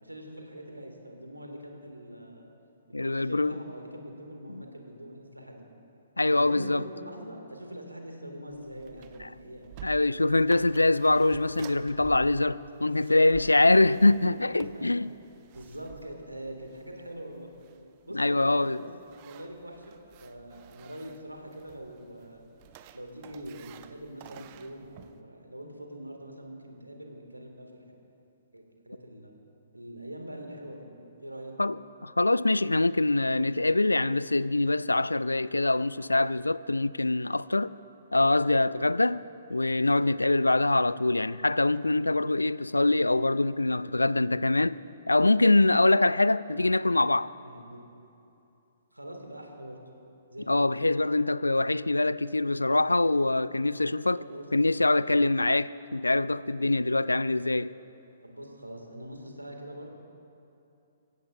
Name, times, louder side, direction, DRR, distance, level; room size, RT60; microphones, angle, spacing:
voice 1, 0.0-2.5 2.9-5.6 6.3-9.9 12.5-13.4 13.9-14.1 14.6-14.9 15.5-17.5 18.1-22.4 22.9-27.7 28.5-29.3 29.7-30.9 31.2-31.5 38.5-38.8 39.8-40.1 43.8-44.1 47.4-47.8 48.9-49.8 50.3-50.7 54.2-54.5 55.2-55.3 56.6-56.8 58.2-59.9, right 1 dB, 85° right, 2.2 m, -43 dB
voice 2, 2.9-3.5 4.5-4.6 6.2-6.8 9.2-9.3 9.8-15.1 18.1-18.8 31.6-31.8 32.0-37.8 38.1-39.2 39.5-44.8 45.1-47.3 50.5-54.2 54.5-57.7, left 2 dB, 80° left, 0.3 m, -24 dB
sound 1, 8.5-25.2, right 11 dB, 35° right, 0.6 m, -51 dB
24.0 x 16.0 x 2.6 m
figure-of-eight pair, 125°, 0 cm